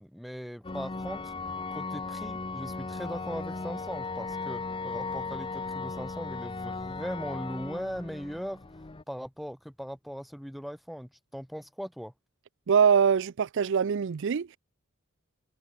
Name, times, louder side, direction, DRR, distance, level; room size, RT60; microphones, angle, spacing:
voice 1, 0.0-1.3 1.7-8.6 9.1-12.1, equal, ahead, 1.7 m, -39 dB
sound 1, 0.6-9.0, left 3 dB, 25° left, 0.8 m, -37 dB
voice 2, 12.7-14.6, right 7 dB, 60° right, 0.4 m, -23 dB
head